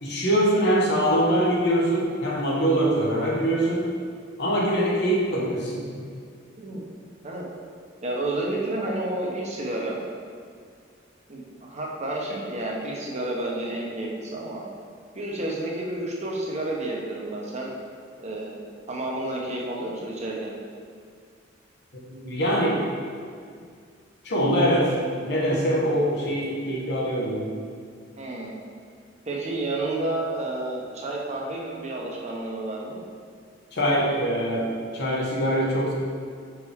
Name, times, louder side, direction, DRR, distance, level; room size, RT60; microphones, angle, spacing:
voice 1, 0.0-3.9 4.4-5.9 22.1-22.9 24.2-24.9 25.2-27.5 33.7-35.9, equal, 60° left, -4 dB, 1.2 m, -23 dB
voice 2, 8.0-10.0 11.3-14.6 15.1-17.7 18.2-18.6 18.9-20.5 28.2-28.5 29.3-33.0, right 2 dB, 35° right, -3 dB, 0.9 m, -30 dB
5.8 x 4.8 x 3.5 m, 2.2 s
head